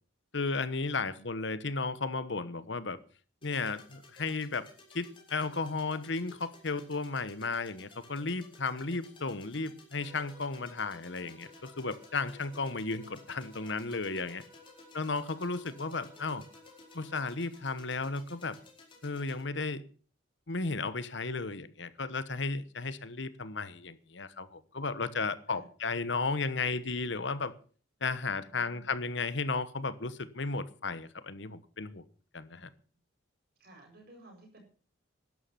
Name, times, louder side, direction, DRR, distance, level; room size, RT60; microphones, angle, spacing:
voice 1, 0.3-3.0 3.4-4.6 4.9-14.4 14.9-16.4 16.9-18.6 19.0-19.8 20.5-27.5 28.0-32.0 32.3-32.7, left 3 dB, 70° left, 14 dB, 1.1 m, -34 dB
sound 1, 3.4-19.4, left 3 dB, 25° left, 4.6 m, -56 dB
sound 2, 10.0-17.4, left 3 dB, 15° right, 5.6 m, -58 dB
voice 2, 28.4-28.9 32.5-32.6 33.6-34.6, right 2 dB, 55° right, 1 dB, 7.4 m, -56 dB
12.5 x 11.5 x 5.9 m, 0.41 s
head